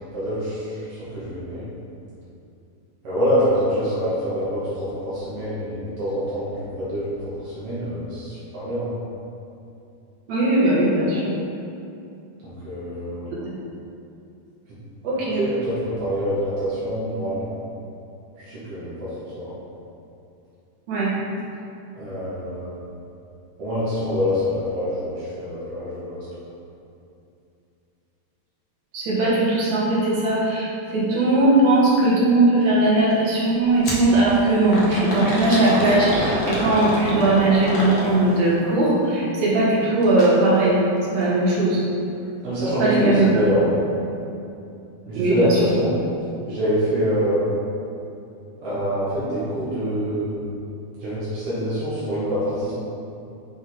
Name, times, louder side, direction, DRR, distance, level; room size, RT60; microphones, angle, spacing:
voice 1, 0.1-1.6 3.0-8.9 12.4-13.3 15.4-17.6 18.4-19.5 21.9-22.8 23.6-26.3 42.4-43.7 45.1-45.9 46.5-47.5 48.6-50.5 51.0-52.7, equal, 50° right, -12 dB, 2.4 m, -25 dB
voice 2, 10.3-11.3 13.3-13.6 15.0-15.4 20.9-21.1 28.9-40.8 41.1-41.8 42.8-43.6 45.1-45.6, right 2 dB, 70° right, -7 dB, 2.6 m, -19 dB
sound 1, 33.8-34.1 34.7-38.4 40.0-40.3 40.7-40.8 41.6-41.7, left 1 dB, 60° left, 0.9 m, -26 dB
6.4 x 5.4 x 3.7 m, 2.7 s
omnidirectional pair, 3.4 m